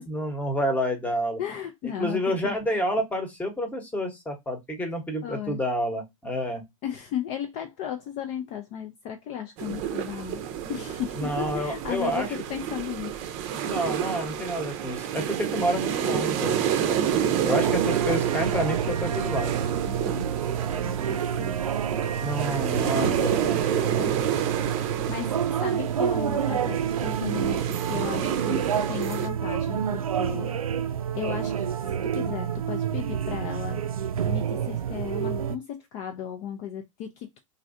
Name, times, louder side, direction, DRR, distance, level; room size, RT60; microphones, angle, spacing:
voice 1, 0.0-1.4 2.0-6.6 11.2-12.3 13.6-17.1 17.4-19.6 22.2-24.1, equal, 10° left, 1.0 m, -29 dB
voice 2, 1.4-2.5 5.2-5.6 6.8-10.4 10.7-13.1 19.8-20.3 20.8-21.6 24.6-24.7 25.1-30.6 31.1-31.5 32.0-33.8 34.2-37.4, left 9 dB, 40° left, 0.5 m, -35 dB
sound 1, 9.6-29.3, right 9 dB, 40° right, 0.6 m, -29 dB
sound 2, 17.5-35.6, right 8 dB, 80° right, 0.5 m, -28 dB
3.0 x 2.7 x 2.5 m
figure-of-eight pair, 100°, 18 cm